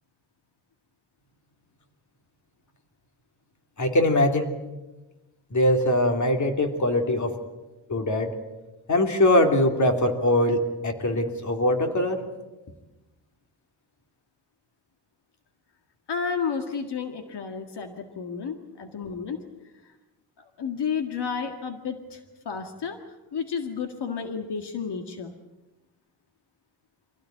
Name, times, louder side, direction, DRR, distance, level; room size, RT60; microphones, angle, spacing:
voice 1, 3.8-4.5 5.5-7.4 7.9-8.3 8.9-12.2, left 1 dB, 45° left, 5 dB, 3.0 m, -22 dB
voice 2, 16.1-19.4 20.6-23.0 23.3-25.3, left 6 dB, 75° left, 6 dB, 2.1 m, -31 dB
25.5 x 16.5 x 9.1 m, 1.1 s
wide cardioid pair, 115°, 41 cm